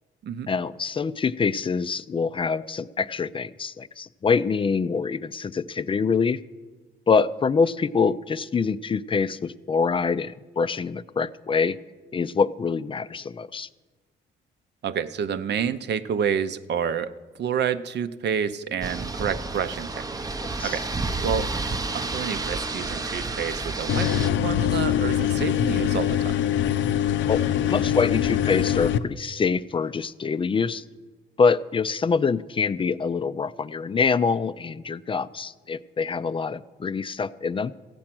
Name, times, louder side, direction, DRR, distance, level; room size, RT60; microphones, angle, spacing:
voice 1, 0.5-6.4 7.1-11.8 12.1-13.7 20.6-20.8 27.3-30.8 31.4-37.7, left 5 dB, 25° left, 15 dB, 0.4 m, -25 dB
voice 2, 14.8-17.1 17.4-20.3 20.6-20.8 21.2-21.5 21.9-26.6, right 7 dB, 60° right, 12 dB, 0.7 m, -29 dB
sound 1, 18.8-24.3, right 3 dB, 20° right, 0.6 m, -30 dB
sound 2, 23.9-29.0, left 10 dB, 75° left, 0.6 m, -23 dB
15.0 x 8.6 x 6.0 m, 1.3 s
cardioid pair, 90°, 20 cm